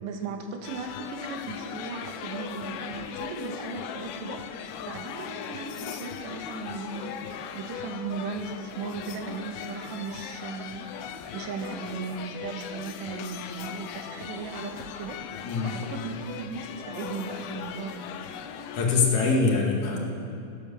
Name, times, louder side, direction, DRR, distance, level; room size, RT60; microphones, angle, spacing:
voice 1, 0.0-18.0, right 4 dB, 75° right, 4 dB, 3.4 m, -37 dB
sound 1, 0.6-18.9, left 8 dB, 90° left, 2.2 m, -39 dB
voice 2, 15.4-15.8 18.7-20.1, left 4 dB, 50° left, -1 dB, 2.8 m, -23 dB
18.0 x 9.6 x 7.0 m, 2.6 s
omnidirectional pair, 5.1 m